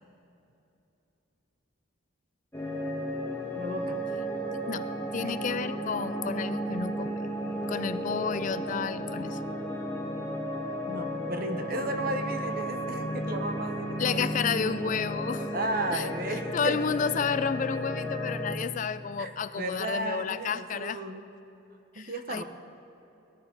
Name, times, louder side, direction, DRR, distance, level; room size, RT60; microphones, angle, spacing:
sound 1, 2.5-18.5, equal, 10° left, 1.6 m, -33 dB
voice 1, 3.6-4.0 5.2-5.4 10.9-14.3 15.5-16.8 19.2-21.2 21.9-22.4, right 2 dB, 50° right, 6 dB, 1.1 m, -34 dB
voice 2, 5.1-7.2 7.7-9.4 14.0-15.5 15.9-16.1 16.5-21.0 21.9-22.4, left 6 dB, 40° left, 14 dB, 0.3 m, -31 dB
19.0 x 14.0 x 4.0 m, 2.9 s
head